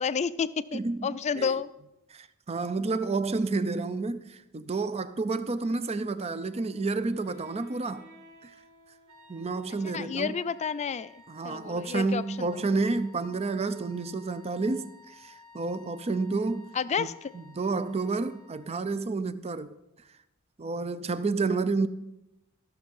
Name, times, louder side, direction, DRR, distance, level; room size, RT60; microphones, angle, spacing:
voice 1, 0.0-1.7 9.8-12.5 16.7-17.3, left 6 dB, 30° left, 0.4 m, -31 dB
voice 2, 0.7-1.5 2.1-8.0 8.4-8.5 9.3-10.4 11.3-16.7 17.0-17.1 17.3-19.8 20.6-21.9, right 3 dB, 30° right, 0.5 m, -30 dB
Wind instrument woodwind instrument, 5.5-10.3, right 1 dB, 50° right, 1.5 m, -57 dB
sound 1, 9.1-19.0, left 3 dB, 75° right, 1.3 m, -55 dB
15.0 x 6.5 x 5.4 m
head